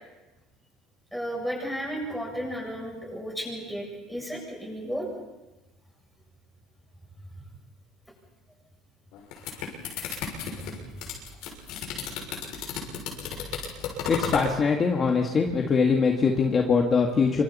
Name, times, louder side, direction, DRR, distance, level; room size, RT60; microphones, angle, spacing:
voice 1, 1.1-5.1 10.4-10.5, equal, ahead, -1 dB, 7.9 m, -33 dB
sound 1, 9.1-14.5, left 6 dB, 70° left, 6.4 m, -33 dB
voice 2, 14.1-17.4, left 5 dB, 30° left, 1 dB, 1.9 m, -22 dB
27.0 x 25.5 x 4.3 m, 1.1 s
cardioid pair, 130°, 0 cm